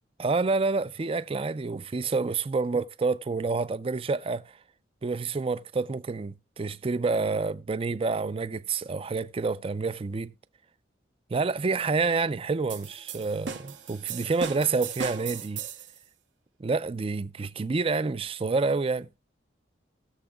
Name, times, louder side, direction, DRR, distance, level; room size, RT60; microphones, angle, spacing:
voice 1, 0.2-4.5 5.0-10.3 11.3-15.6 16.6-19.1, right 4 dB, 30° right, 0.4 m, -28 dB
sound 1, 12.7-16.0, right 6 dB, 80° right, 1.4 m, -37 dB
19.5 x 7.0 x 2.3 m
head